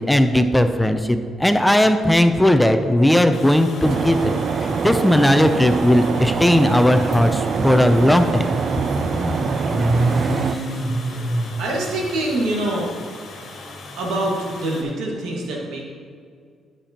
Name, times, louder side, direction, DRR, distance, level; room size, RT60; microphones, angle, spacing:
voice 1, 0.0-4.4 4.8-8.5, left 1 dB, 5° left, 8 dB, 0.5 m, -17 dB
Water, 3.3-14.8, left 3 dB, 60° left, 1.5 m, -40 dB
sound 1, 3.8-10.5, right 6 dB, 55° right, 0.3 m, -25 dB
Motorcycle, 7.3-14.9, right 1 dB, 25° right, 1.0 m, -27 dB
voice 2, 11.6-12.9 14.0-15.8, right 1 dB, 85° right, -1 dB, 1.7 m, -25 dB
11.5 x 6.8 x 2.9 m, 2.1 s
cardioid pair, 90°, 0 cm